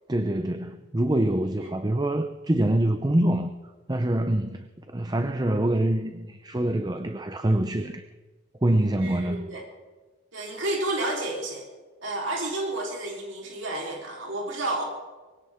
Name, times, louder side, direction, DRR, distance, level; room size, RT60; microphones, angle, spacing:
voice 1, 0.1-3.5 3.9-8.0 8.6-9.5, right 1 dB, 20° right, 9 dB, 0.6 m, -25 dB
voice 2, 9.0-9.6 10.3-11.6 12.0-14.8, right 2 dB, 80° right, -1 dB, 3.9 m, -31 dB
22.5 x 17.0 x 3.7 m, 1.3 s
head